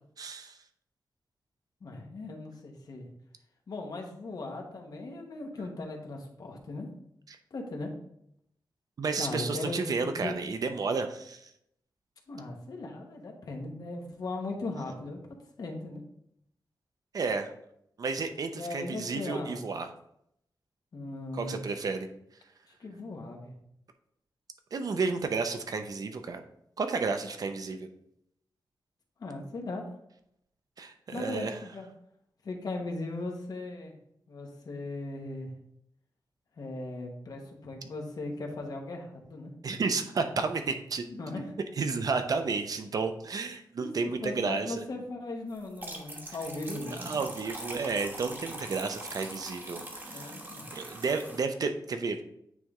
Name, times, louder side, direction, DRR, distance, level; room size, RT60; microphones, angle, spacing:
voice 1, 0.2-0.6 7.3-7.4 9.0-11.4 17.1-17.5 18.0-19.9 21.3-22.1 24.7-26.4 26.8-27.9 30.8-31.6 39.6-41.0 41.8-44.8 46.7-50.3 50.7-52.2, right 4 dB, 55° right, 7 dB, 0.7 m, -32 dB
voice 2, 1.8-3.1 3.7-6.9 7.5-7.9 9.2-10.4 12.3-15.2 15.6-16.0 18.5-19.7 20.9-21.6 22.7-23.5 29.2-29.8 31.1-31.9 32.4-33.9 34.3-35.5 36.6-39.5 41.1-41.5 43.8-43.9 44.2-47.2 50.1-50.7, left 2 dB, 55° left, 1 dB, 1.2 m, -38 dB
sound 1, 45.6-51.4, right 1 dB, 25° right, 1.2 m, -42 dB
9.2 x 3.4 x 3.7 m, 0.75 s
wide cardioid pair, 170°, 8 cm